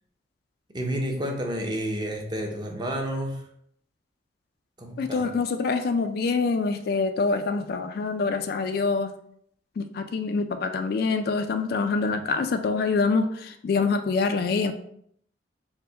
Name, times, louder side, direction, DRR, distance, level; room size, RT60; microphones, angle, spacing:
voice 1, 0.7-3.4 4.8-5.3, equal, 25° right, 2 dB, 0.6 m, -30 dB
voice 2, 5.0-9.1 9.8-14.7, left 4 dB, 55° left, 8 dB, 0.3 m, -25 dB
4.5 x 2.1 x 3.8 m, 0.68 s
head